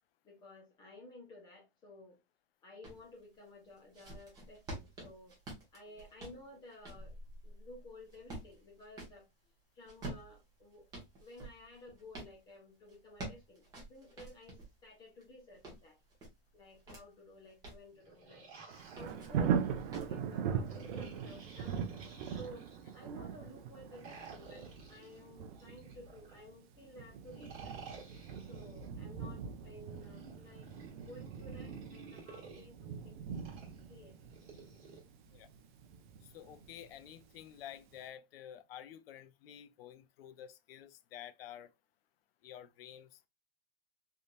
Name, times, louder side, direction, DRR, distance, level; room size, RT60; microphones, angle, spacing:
voice 1, 0.2-2.2 2.6-5.4 5.7-7.2 7.4-9.3 9.7-10.9 11.2-16.0 16.5-18.5 18.9-19.7 20.0-22.7 22.9-27.8 28.5-30.7 31.0-33.2 33.9-34.2, left 1 dB, 15° left, 0.8 m, -54 dB
sound 1, 2.8-3.0 3.6-9.2 9.8-12.3 12.9-14.7 15.2-17.0 17.5-17.9 18.8-19.4 19.9-20.2, right 1 dB, 10° right, 0.9 m, -48 dB
sound 2, 17.9-19.9 20.7-23.0 23.9-26.4 27.2-28.9 29.8-32.6 33.3-35.0, right 4 dB, 25° right, 1.3 m, -53 dB
Thunder, 18.7-37.5 37.9-38.0, right 7 dB, 50° right, 0.6 m, -41 dB
voice 2, 36.2-41.7 42.4-43.2, left 10 dB, 70° left, 0.5 m, -50 dB
3.5 x 2.7 x 2.5 m
supercardioid pair, 175°, 31 cm